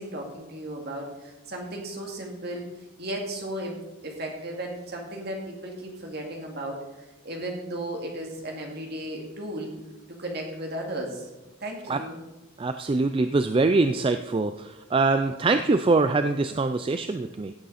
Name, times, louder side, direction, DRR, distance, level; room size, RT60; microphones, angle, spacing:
voice 1, 0.0-2.7 3.0-9.7 10.1-11.3 11.6-12.2, right 1 dB, 50° right, 1 dB, 2.4 m, -35 dB
voice 2, 12.6-17.5, right 3 dB, 25° right, 9 dB, 0.3 m, -23 dB
16.5 x 8.2 x 4.2 m, 1.1 s
head